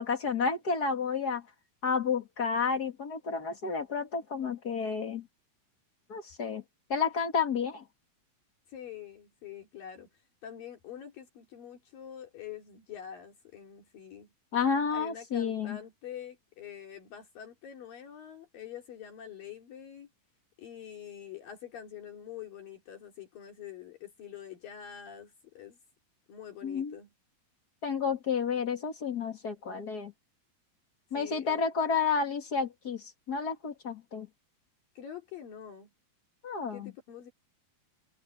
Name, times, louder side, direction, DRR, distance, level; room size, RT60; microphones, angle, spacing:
voice 1, 0.0-1.4 1.8-5.2 6.1-6.6 6.9-7.8 14.5-15.8 26.6-26.9 27.8-30.1 31.1-34.3 36.4-36.9, left 5 dB, 35° left, 1.8 m, -31 dB
voice 2, 8.7-10.1 10.4-14.3 14.9-20.1 20.6-25.8 26.3-27.1 31.1-31.6 35.0-35.9 36.7-37.3, left 9 dB, 70° left, 4.5 m, -45 dB
omnidirectional pair, 4.2 m